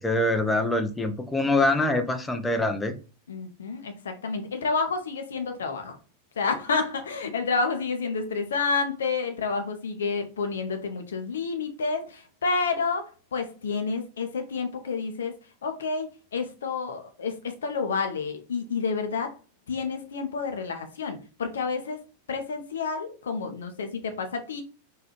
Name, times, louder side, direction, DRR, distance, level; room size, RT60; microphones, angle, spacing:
voice 1, 0.0-3.0, left 2 dB, 10° left, 0.6 m, -24 dB
voice 2, 3.3-6.0 6.4-15.3 15.6-19.3 19.7-22.0 22.3-24.6, left 4 dB, 65° left, 0.6 m, -29 dB
4.0 x 2.6 x 3.0 m
figure-of-eight pair, 90°, 0 cm